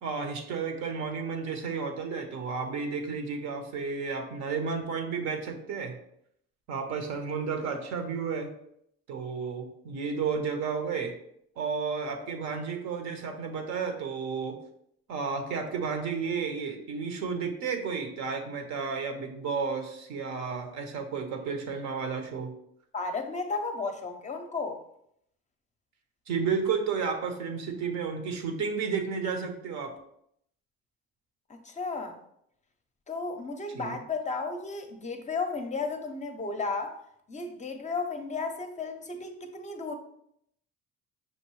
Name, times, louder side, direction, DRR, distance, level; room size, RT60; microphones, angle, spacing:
voice 1, 0.0-6.0 6.7-8.5 9.1-11.2 11.6-14.6 15.1-22.5 26.3-29.9 33.7-34.0, right 5 dB, 70° right, 5 dB, 0.8 m, -32 dB
voice 2, 22.9-24.8 31.5-32.2 33.1-37.0 37.3-39.9, left 4 dB, 25° left, 5 dB, 0.5 m, -34 dB
5.7 x 2.6 x 3.0 m, 0.73 s
supercardioid pair, 90°, 29 cm